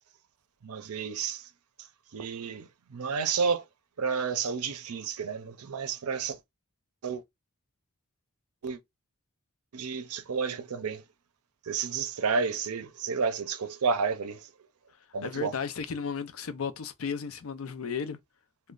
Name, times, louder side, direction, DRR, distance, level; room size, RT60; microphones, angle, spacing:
voice 1, 0.6-1.5 2.1-3.7 4.0-6.4 7.0-7.2 8.6-8.8 9.7-11.0 11.6-14.5 15.1-15.5, right 5 dB, 80° right, 0.6 m, -31 dB
voice 2, 15.2-18.2, left 6 dB, 65° left, 0.5 m, -34 dB
3.1 x 2.2 x 3.8 m
head